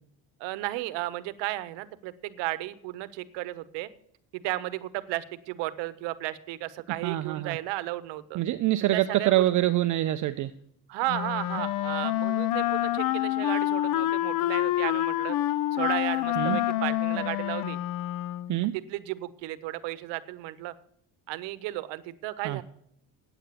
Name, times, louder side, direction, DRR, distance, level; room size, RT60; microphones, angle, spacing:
voice 1, 0.4-3.9 4.3-8.4 8.9-9.5 10.9-15.4 15.7-17.8 18.7-20.7 21.3-22.6, right 17 dB, 75° right, 15 dB, 0.9 m, -34 dB
voice 2, 7.0-7.6 8.3-10.5 16.4-16.6 18.5-18.7 22.4-22.6, right 14 dB, 45° right, 11 dB, 0.5 m, -25 dB
Wind instrument woodwind instrument, 11.1-18.6, left 14 dB, 50° left, 0.5 m, -27 dB
9.0 x 8.2 x 8.4 m, 0.71 s
cardioid pair, 140°, 44 cm